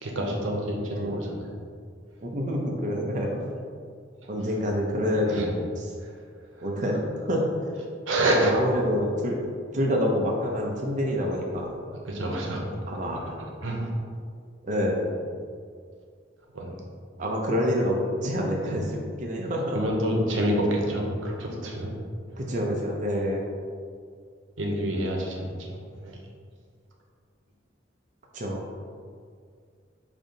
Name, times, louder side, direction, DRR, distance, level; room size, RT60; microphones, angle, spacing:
voice 1, 0.0-1.5 4.2-4.3 5.2-5.5 6.0-6.2 6.5-6.7 8.1-8.5 12.0-12.6 13.6-13.9 16.5-16.7 18.6-18.7 19.7-21.9 24.6-26.2, right 1 dB, 90° right, 0 dB, 0.8 m, -28 dB
voice 2, 0.8-1.2 2.2-3.4 4.3-5.5 5.8-5.9 6.6-7.7 8.3-9.4 9.7-11.7 12.9-13.5 14.6-15.1 17.2-19.8 22.4-23.4 28.3-28.6, equal, 40° right, -1 dB, 0.5 m, -27 dB
5.2 x 2.7 x 3.8 m, 2.1 s
head